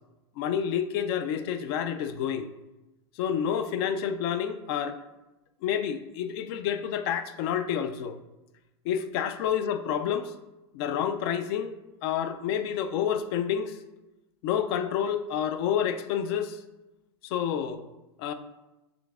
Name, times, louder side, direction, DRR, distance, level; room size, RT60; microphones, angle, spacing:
voice 1, 0.4-2.5 3.2-5.0 5.6-8.2 8.8-10.3 10.7-11.7 12.0-13.8 14.4-16.6 17.2-17.8 18.2-18.3, left 8 dB, 60° left, 9 dB, 0.4 m, -29 dB
5.0 x 3.4 x 2.4 m, 1.0 s
hypercardioid pair, 110°, 15 cm